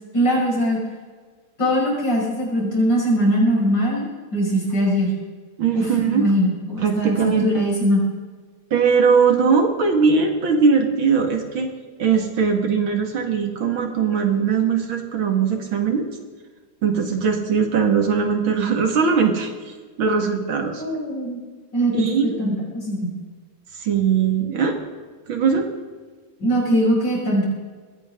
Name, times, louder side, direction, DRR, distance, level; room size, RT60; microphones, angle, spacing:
voice 1, 0.1-0.8 1.6-4.0 4.3-5.1 5.7-8.0 20.8-21.4 21.7-23.1 26.4-27.5, equal, 60° left, -4 dB, 6.7 m, -21 dB
voice 2, 5.6-6.3 6.8-7.5 8.7-11.7 12.0-16.1 16.8-20.8 21.9-22.4 23.8-24.8 25.3-25.7, right 5 dB, 80° right, 4 dB, 2.8 m, -20 dB
21.0 x 17.5 x 3.8 m, 1.5 s
omnidirectional pair, 2.1 m